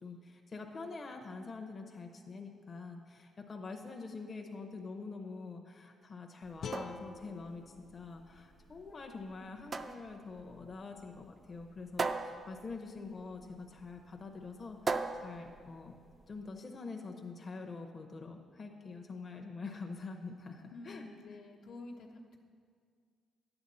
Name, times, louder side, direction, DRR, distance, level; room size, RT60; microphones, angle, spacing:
voice 1, 0.0-15.9 16.3-21.1, left 4 dB, 35° left, 3 dB, 0.8 m, -45 dB
sound 1, 6.4-16.4, right 4 dB, 35° right, 0.4 m, -41 dB
sound 2, 6.6-9.7, left 6 dB, 60° left, 0.4 m, -48 dB
voice 2, 20.7-22.4, left 2 dB, 80° left, -1 dB, 1.1 m, -49 dB
10.5 x 8.0 x 4.2 m, 2.1 s
cardioid pair, 90°, 0 cm